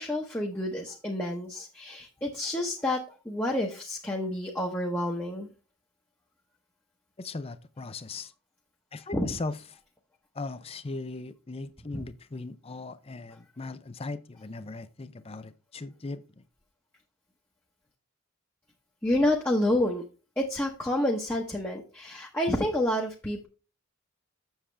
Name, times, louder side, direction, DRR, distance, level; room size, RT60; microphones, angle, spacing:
voice 1, 0.0-5.5 9.1-9.4 11.9-12.0 19.0-20.0 20.4-23.5, left 1 dB, 10° left, 1.0 m, -29 dB
voice 2, 7.2-8.3 8.9-9.6 10.3-16.4, left 3 dB, 25° left, 0.5 m, -38 dB
7.3 x 7.2 x 3.3 m
head